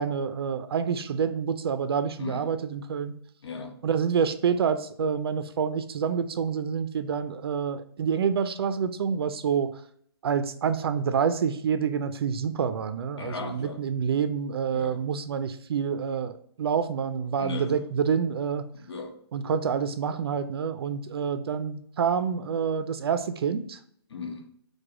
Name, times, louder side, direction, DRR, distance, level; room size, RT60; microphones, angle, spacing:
voice 1, 0.0-3.2 3.8-9.7 10.2-18.7 19.3-23.8, right 7 dB, 65° right, 0.4 m, -27 dB
voice 2, 3.4-3.8 13.2-13.8 14.7-15.0 17.4-17.8 18.7-19.2 24.1-24.5, left 5 dB, 90° left, 0.9 m, -37 dB
4.8 x 2.2 x 4.7 m
hypercardioid pair, 165°, 14 cm